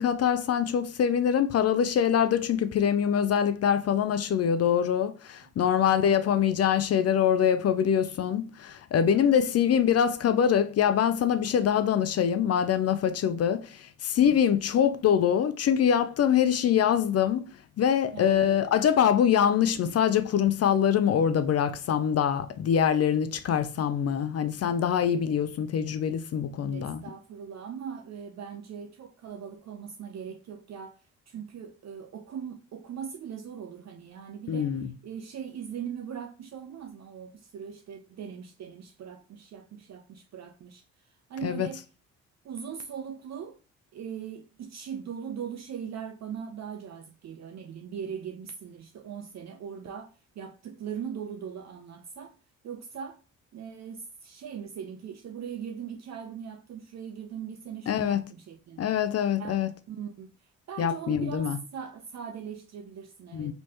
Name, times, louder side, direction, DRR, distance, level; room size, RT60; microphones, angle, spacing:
voice 1, 0.0-17.5 17.8-27.0 34.5-34.9 41.4-41.7 57.9-58.2 58.8-59.7 60.8-61.6 63.3-63.5, left 8 dB, 45° left, 0.5 m, -24 dB
voice 2, 4.5-5.0 5.7-6.0 13.1-13.2 14.2-14.4 18.1-18.8 26.7-31.0 31.3-34.8 35.0-40.8 41.3-41.8 42.4-43.6 43.9-52.4 52.6-53.2 53.5-58.9 59.4-59.6 59.9-60.3 60.7-63.5, right 7 dB, 50° right, 0.5 m, -40 dB
3.2 x 3.0 x 2.8 m
supercardioid pair, 55°, 35 cm